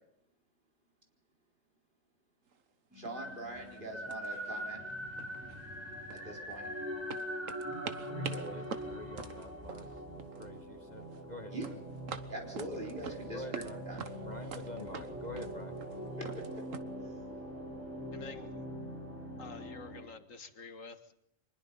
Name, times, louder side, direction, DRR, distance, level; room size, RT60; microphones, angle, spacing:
sound 1, 2.5-2.6 3.0-3.3 3.6-3.8 4.1-4.9 5.2-6.7 7.1-10.6 10.9-11.3 11.6-13.7 14.0-16.8, right 6 dB, 85° right, 1.6 m, -45 dB
sound 2, 2.9-20.0, equal, 10° right, 4.4 m, -42 dB
voice 1, 2.9-4.8 6.1-6.7 8.1-8.6 11.5-11.6 12.3-14.0 16.2-16.6 17.0-17.1, right 2 dB, 40° right, 1 dB, 4.6 m, -43 dB
voice 2, 8.2-9.9 10.4-11.8 13.3-13.8 14.3-15.7, left 2 dB, 35° left, 7 dB, 1.4 m, -47 dB
voice 3, 18.1-18.7 19.4-21.2, left 4 dB, 85° left, 8 dB, 2.1 m, -48 dB
24.5 x 21.0 x 5.5 m, 0.78 s
omnidirectional pair, 1.3 m